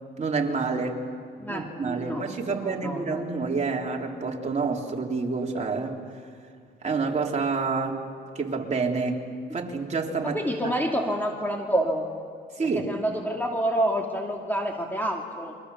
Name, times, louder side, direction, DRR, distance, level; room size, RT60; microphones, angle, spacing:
voice 1, 0.2-1.0 1.5-6.0 6.8-8.0 8.3-9.2 9.5-10.7 12.6-12.8, right 4 dB, 35° right, 0 dB, 3.5 m, -28 dB
voice 2, 1.4-3.2 10.2-12.1 12.6-15.5, right 1 dB, 10° left, 1 dB, 2.6 m, -28 dB
29.5 x 24.0 x 7.1 m, 2.2 s
cardioid pair, 90°, 20 cm